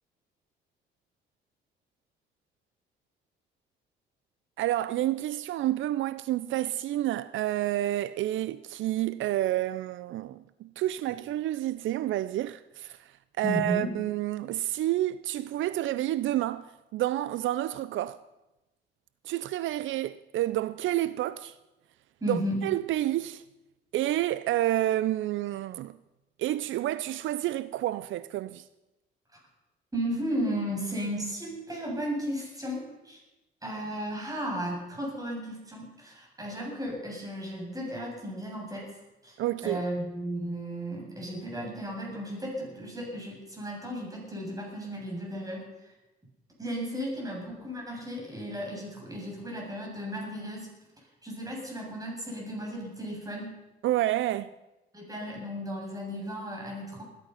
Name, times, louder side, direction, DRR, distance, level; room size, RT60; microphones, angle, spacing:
voice 1, 4.6-18.2 19.2-21.6 22.2-23.4 23.9-26.0 26.4-28.6 39.4-39.8 53.8-54.5, right 14 dB, 75° right, 0.5 m, -29 dB
voice 2, 13.4-13.9 22.2-22.7 29.3-29.4 29.9-33.2 33.6-39.0 39.2-45.9 46.6-50.7 51.0-53.6 54.9-57.0, equal, 15° right, 7.9 m, -35 dB
20.5 x 11.5 x 5.7 m
cardioid pair, 90°, 20 cm